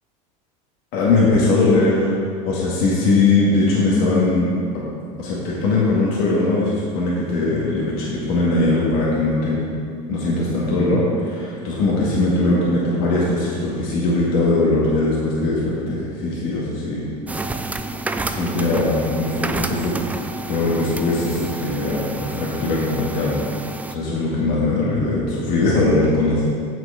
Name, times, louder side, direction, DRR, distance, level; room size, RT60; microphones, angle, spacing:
voice 1, 0.9-2.1 2.4-4.8 5.2-9.7 10.1-17.1 18.2-20.0 20.5-23.4 23.9-26.4, left 2 dB, 60° left, -6 dB, 2.1 m, -20 dB
sound 1, 17.3-24.0, right 2 dB, 10° right, 0.3 m, -29 dB
8.2 x 6.0 x 5.1 m, 2.3 s
supercardioid pair, 115°, 18 cm